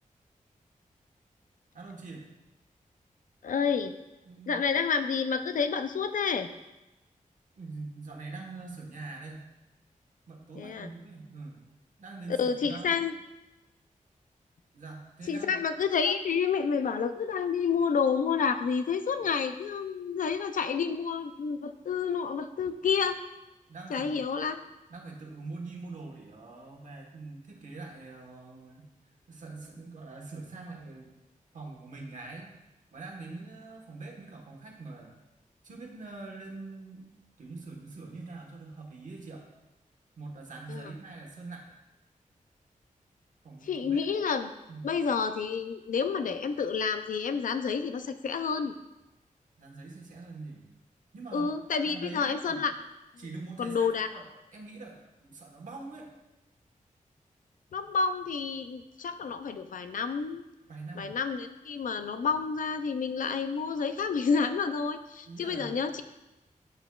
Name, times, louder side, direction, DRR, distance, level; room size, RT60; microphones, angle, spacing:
voice 1, 1.7-2.3 4.2-4.6 7.5-9.4 10.3-11.6 12.0-13.0 14.7-15.7 23.7-24.2 24.9-28.9 29.3-31.1 31.5-32.5 32.9-35.1 35.6-37.1 37.4-39.5 40.2-41.8 43.4-44.0 44.7-44.9 49.6-50.6 51.1-51.5 51.8-52.6 53.2-54.2 54.5-56.1 60.7-61.1 65.3-65.8, right 3 dB, 65° right, 0 dB, 1.3 m, -44 dB
voice 2, 3.4-3.9 4.5-6.5 10.6-10.9 12.3-13.1 15.3-23.2 23.9-24.6 40.7-40.9 43.7-44.5 44.8-48.7 51.3-52.7 53.6-54.1 57.7-60.5 61.0-66.0, left 6 dB, 75° left, 10 dB, 0.4 m, -29 dB
7.8 x 6.9 x 2.3 m, 0.99 s
wide cardioid pair, 150°, 14 cm